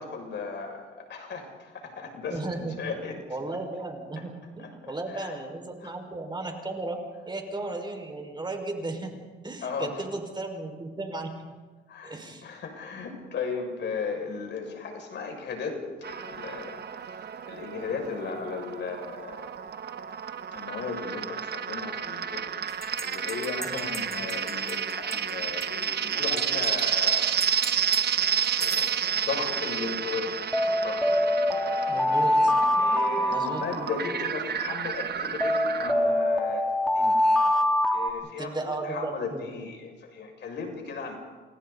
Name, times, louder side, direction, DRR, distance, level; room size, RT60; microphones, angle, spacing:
voice 1, 0.0-3.1 4.6-4.7 5.1-5.3 5.8-5.9 9.6-10.0 11.9-12.2 12.4-17.2 17.5-19.5 20.5-27.8 28.6-30.4 30.7-31.0 32.8-36.6 36.9-37.2 37.9-41.2, left 5 dB, 65° left, 3 dB, 6.7 m, -36 dB
voice 2, 2.3-7.0 7.3-9.2 9.4-11.3 12.0-12.5 23.6-23.9 31.9-32.5 33.3-33.9 38.4-39.5, right 2 dB, 25° right, 3 dB, 5.6 m, -35 dB
sound 1, 16.0-35.9, right 8 dB, 55° right, 1.2 m, -31 dB
sound 2, 22.8-24.7 25.1-25.2 25.6-25.7 26.4-26.8 27.4-28.0 28.4-28.8 30.5-34.3 35.4-38.1, left 1 dB, ahead, 3.1 m, -25 dB
30.0 x 27.5 x 4.2 m, 1.4 s
cardioid pair, 90°, 20 cm